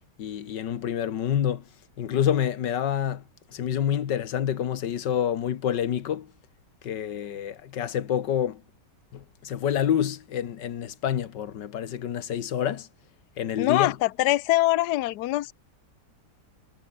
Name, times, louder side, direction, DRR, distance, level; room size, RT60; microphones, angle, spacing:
voice 1, 0.2-1.6 2.0-3.2 3.5-6.3 6.8-8.6 9.1-12.9 13.4-14.0, left 9 dB, 85° left, 1.9 m, -27 dB
voice 2, 13.6-15.5, left 16 dB, 70° left, 1.2 m, -23 dB
omnidirectional pair, 1.9 m